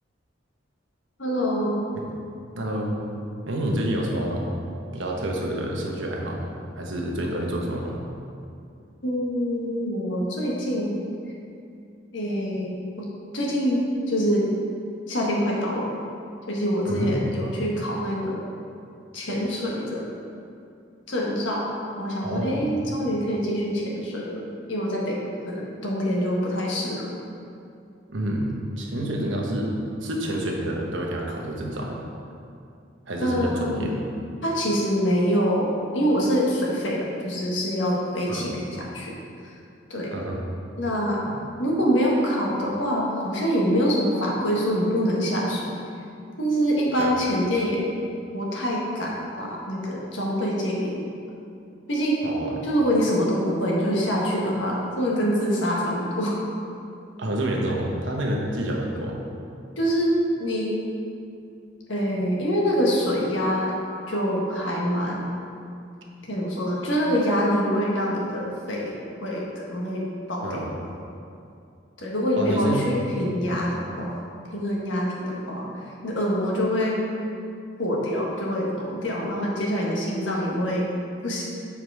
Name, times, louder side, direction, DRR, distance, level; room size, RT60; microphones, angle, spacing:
voice 1, 1.2-1.9 9.0-11.0 12.1-13.1 13.3-14.5 15.1-16.0 16.5-18.4 19.1-20.1 21.1-21.7 21.9-27.2 33.2-33.9 34.4-39.1 39.9-40.1 40.8-41.2 41.6-45.7 46.4-47.8 48.3-51.1 51.9-52.2 52.6-56.4 59.8-60.7 61.9-63.8 64.1-65.3 66.3-70.8 72.0-74.2 74.5-77.0 77.8-80.9 81.2-81.4, equal, 80° left, -3 dB, 1.5 m, -25 dB
voice 2, 2.6-3.0 3.5-4.5 4.9-6.5 6.8-8.0 16.9-17.2 22.2-22.7 28.1-29.7 30.0-32.0 33.1-34.0 38.3-38.5 40.1-40.4 41.3-41.4 47.0-47.1 52.2-52.6 57.2-59.2 70.4-70.7 72.4-72.8 73.4-73.6, right 1 dB, 80° right, -1 dB, 1.2 m, -28 dB
7.3 x 4.9 x 4.8 m, 2.5 s
head